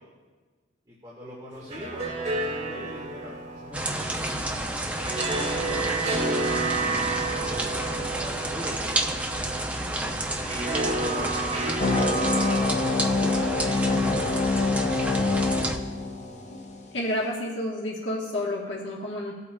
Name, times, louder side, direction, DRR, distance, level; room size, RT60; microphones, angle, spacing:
voice 1, 0.9-6.5 7.2-10.0 10.3-12.8 13.3-13.7 15.7-16.0, equal, 25° right, -5 dB, 1.7 m, -41 dB
sound 1, 1.5-16.7, right 3 dB, 40° right, 2.3 m, -32 dB
sound 2, 3.7-15.8, right 1 dB, 10° right, 0.7 m, -30 dB
sound 3, 11.8-16.8, left 3 dB, 40° left, 0.8 m, -26 dB
voice 2, 16.9-19.3, left 1 dB, 85° left, -3 dB, 1.4 m, -30 dB
18.0 x 8.2 x 2.3 m, 1.4 s
head